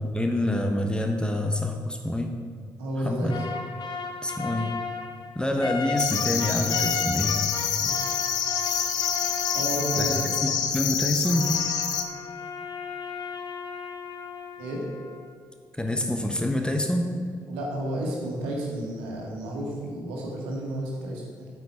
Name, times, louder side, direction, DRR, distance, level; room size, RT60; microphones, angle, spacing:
voice 1, 0.1-2.4 3.0-3.4 4.2-4.8 5.3-7.5 10.0-10.1 10.4-11.6 15.8-17.1, left 1 dB, 10° left, 4 dB, 1.1 m, -26 dB
voice 2, 2.8-3.4 7.8-8.1 9.5-10.4 14.6-14.8 17.5-21.5, right 1 dB, 70° right, -2 dB, 1.8 m, -32 dB
sound 1, 3.3-10.8 11.2-15.3, left 5 dB, 50° left, 0.9 m, -35 dB
sound 2, 6.0-12.0, left 8 dB, 80° left, 0.5 m, -27 dB
9.0 x 7.5 x 4.6 m, 2.1 s
figure-of-eight pair, 40°, 10 cm